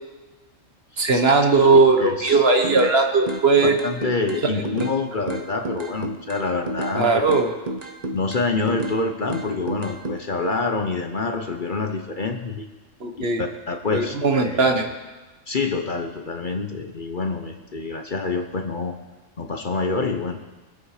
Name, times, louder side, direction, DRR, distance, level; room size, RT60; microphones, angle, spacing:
voice 1, 1.0-3.8 6.9-7.5 13.0-13.4 13.9-14.8, right 3 dB, 55° right, 4 dB, 1.6 m, -18 dB
voice 2, 2.0-2.5 3.5-7.2 8.1-12.7 13.2-14.1 14.4-14.7 15.5-19.0 19.4-20.4, left 3 dB, 45° left, 5 dB, 1.1 m, -27 dB
sound 1, 2.3-3.0 3.3-5.0 5.3-7.0 7.3-9.0 9.3-10.2, right 1 dB, 35° right, 1.2 m, -30 dB
23.5 x 8.2 x 4.9 m, 1.2 s
omnidirectional pair, 1.3 m